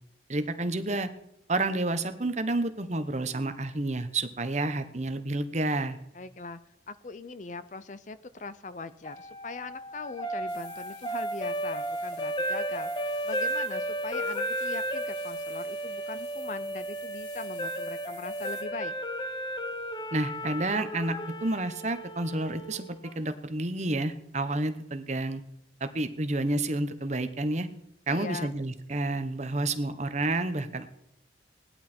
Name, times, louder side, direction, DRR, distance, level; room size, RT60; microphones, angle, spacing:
voice 1, 0.3-1.1 1.5-6.0 20.1-25.4 25.8-27.7 28.1-30.9, right 2 dB, 40° right, 10 dB, 1.0 m, -30 dB
voice 2, 6.1-6.6 6.9-18.9 28.1-28.5, left 3 dB, 40° left, 14 dB, 0.6 m, -41 dB
sound 1, 9.1-23.2, right 1 dB, 25° left, 0.9 m, -34 dB
sound 2, 10.5-18.6, left 4 dB, 75° left, 5.1 m, -52 dB
18.0 x 11.5 x 4.4 m, 0.80 s
head